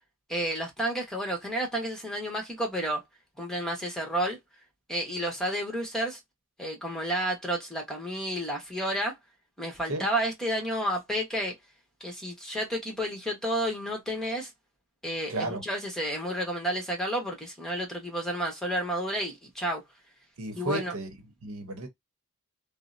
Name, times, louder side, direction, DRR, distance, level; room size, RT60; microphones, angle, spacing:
voice 1, 0.3-3.0 3.4-4.4 4.9-6.2 6.6-9.2 9.6-11.5 12.0-14.5 15.0-19.8 20.5-20.9, right 1 dB, ahead, 1.0 m, -31 dB
voice 2, 15.3-15.6 20.4-21.1 21.4-21.9, right 1 dB, 85° right, 0.8 m, -32 dB
3.6 x 2.0 x 2.5 m
head